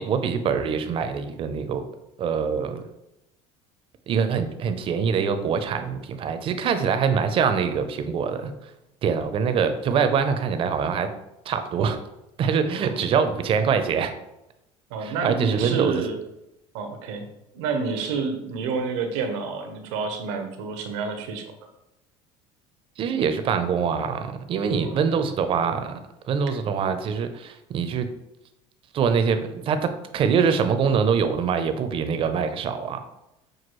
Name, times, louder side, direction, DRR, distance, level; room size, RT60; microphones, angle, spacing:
voice 1, 0.0-1.8 2.2-2.8 4.1-8.7 9.0-11.1 11.5-12.0 12.4-14.1 15.0-16.0 23.0-26.0 26.3-28.1 28.9-33.0, right 6 dB, 40° right, 9 dB, 0.5 m, -24 dB
voice 2, 14.9-16.2 16.7-17.3 17.5-21.5 24.8-25.0, right 4 dB, 90° right, 6 dB, 0.7 m, -29 dB
6.1 x 2.3 x 3.0 m, 0.88 s
supercardioid pair, 115°, 14 cm